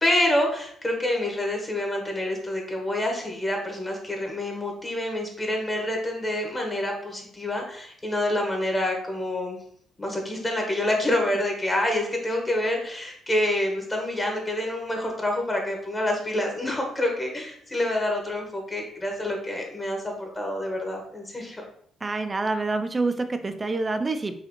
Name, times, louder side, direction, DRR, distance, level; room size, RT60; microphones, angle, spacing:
voice 1, 0.0-9.6 10.0-21.6, left 1 dB, 20° left, 1 dB, 1.1 m, -27 dB
voice 2, 22.0-24.3, right 3 dB, 25° right, 8 dB, 0.4 m, -27 dB
5.0 x 2.4 x 3.0 m, 0.64 s
cardioid pair, 90°, 0 cm